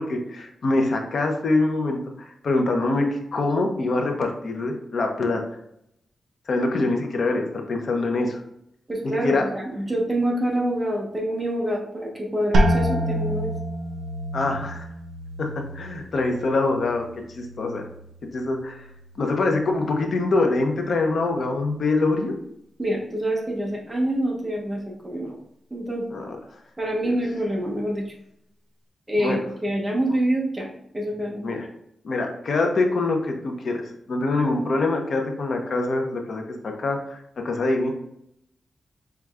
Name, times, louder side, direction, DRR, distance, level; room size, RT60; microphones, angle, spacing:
voice 1, 0.0-5.4 6.5-8.4 9.0-9.4 14.3-14.8 15.4-17.0 17.3-17.9 18.2-18.8 19.2-22.3 26.1-26.4 27.0-27.1 29.2-29.4 31.4-31.7 32.0-37.9, left 2 dB, 50° left, 3 dB, 0.6 m, -24 dB
voice 2, 8.9-13.5 22.8-25.3 25.7-26.0 26.8-28.0 29.1-30.7 30.9-31.4, right 1 dB, 15° right, -2 dB, 0.8 m, -26 dB
sound 1, 12.5-18.2 18.5-19.2 19.7-20.2, equal, 90° right, 0.6 m, -27 dB
4.7 x 3.2 x 2.4 m, 0.76 s
wide cardioid pair, 175°, 0 cm